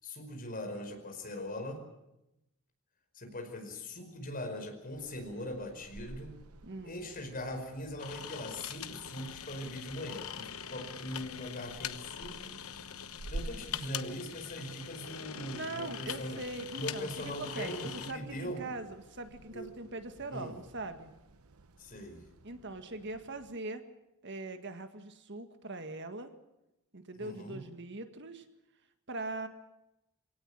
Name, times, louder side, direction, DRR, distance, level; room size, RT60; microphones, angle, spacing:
voice 1, 0.0-1.8 3.1-6.3 6.8-12.6 13.3-16.4 16.8-18.7 19.5-19.7 20.3-20.5 21.8-22.2 27.2-27.6, left 1 dB, 40° left, 4 dB, 5.2 m, -41 dB
sound 1, 4.9-23.6, right 2 dB, 85° right, 1.0 m, -52 dB
voice 2, 6.6-6.9 15.5-17.1 17.4-21.1 22.4-23.8 24.2-26.3 26.9-28.5 29.1-29.5, right 2 dB, 55° right, 8 dB, 1.8 m, -41 dB
sound 2, 8.0-18.1, left 9 dB, 80° left, 1.1 m, -43 dB
24.5 x 17.5 x 8.9 m, 0.89 s
head